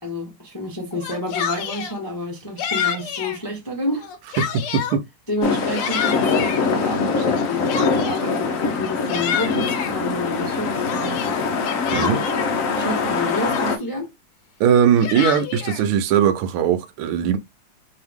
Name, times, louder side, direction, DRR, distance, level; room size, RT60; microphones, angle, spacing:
voice 1, 0.0-4.1 5.3-11.6 11.9-12.3 12.7-14.1, left 1 dB, 20° left, 0.5 m, -29 dB
Yell, 0.9-2.0 2.6-3.4 3.9-5.0 5.5-6.6 7.3-8.3 8.8-9.9 10.5-12.5 13.1-13.2 13.5-14.0 14.7-15.8, left 8 dB, 90° left, 1.7 m, -28 dB
voice 2, 4.4-5.1 11.9-12.2 14.6-17.4, right 8 dB, 80° right, 1.5 m, -19 dB
sound 1, 5.4-13.8, left 5 dB, 65° left, 0.8 m, -23 dB
4.7 x 2.8 x 3.5 m
omnidirectional pair, 2.3 m